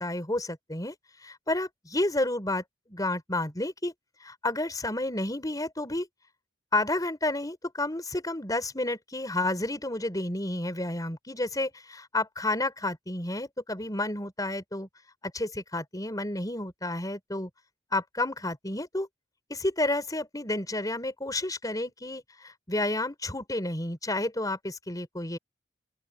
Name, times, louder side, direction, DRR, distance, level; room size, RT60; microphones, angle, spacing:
voice 1, 0.0-3.9 4.2-6.1 6.7-14.9 15.3-17.5 17.9-19.1 19.5-25.4, left 2 dB, 20° left, 5.2 m, -31 dB
open air
head